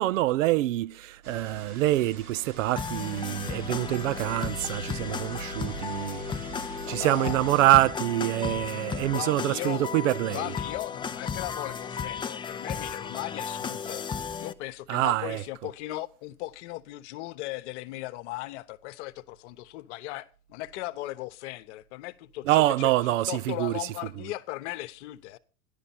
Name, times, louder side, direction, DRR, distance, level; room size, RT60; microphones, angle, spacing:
voice 1, 0.0-6.2 6.9-10.4 14.9-15.4 22.5-23.7, right 16 dB, 60° right, 0.6 m, -25 dB
sound 1, 1.2-7.9, right 4 dB, 80° right, 3.9 m, -42 dB
sound 2, 2.8-14.5, left 6 dB, 10° left, 0.6 m, -35 dB
voice 2, 6.8-7.4 9.1-9.9 10.3-14.1 14.4-25.4, left 18 dB, 50° left, 1.1 m, -37 dB
13.5 x 11.5 x 4.2 m
hypercardioid pair, 110°, 43 cm